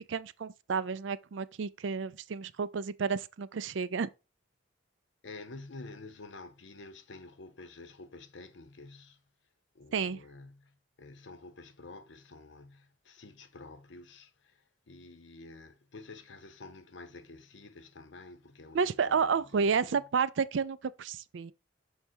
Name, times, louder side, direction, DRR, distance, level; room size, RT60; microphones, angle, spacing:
voice 1, 0.0-4.1 9.9-10.2 18.7-21.5, right 5 dB, 75° right, 0.4 m, -31 dB
voice 2, 5.2-9.2 9.7-20.0, left 3 dB, 70° left, 0.8 m, -49 dB
6.4 x 3.4 x 4.4 m
head